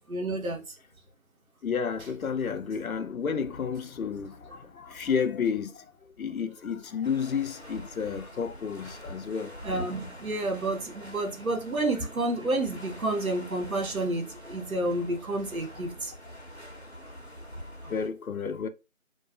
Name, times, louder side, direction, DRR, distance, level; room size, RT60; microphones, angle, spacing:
voice 1, 0.1-0.8 9.6-16.1, right 2 dB, 80° right, 0.9 m, -30 dB
voice 2, 1.6-5.9 6.2-9.6 17.9-18.7, left 6 dB, 85° left, 0.5 m, -31 dB
sound 1, 7.0-18.1, equal, 50° left, 0.8 m, -46 dB
2.4 x 2.2 x 2.4 m
figure-of-eight pair, 180°, 41 cm